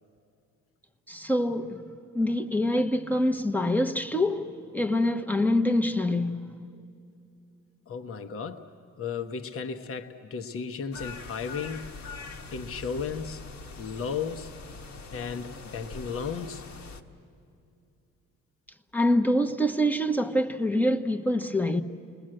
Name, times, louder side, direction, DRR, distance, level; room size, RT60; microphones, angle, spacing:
voice 1, 1.1-1.8 2.1-6.6 18.9-21.8, left 1 dB, 5° left, 1.0 m, -25 dB
voice 2, 7.9-8.7 9.0-12.0 12.5-13.5 13.8-14.5 15.1-16.6, left 6 dB, 45° left, 1.1 m, -34 dB
sound 1, 10.9-17.0, left 3 dB, 60° left, 1.5 m, -43 dB
29.5 x 20.5 x 7.8 m
cardioid pair, 90°, 30 cm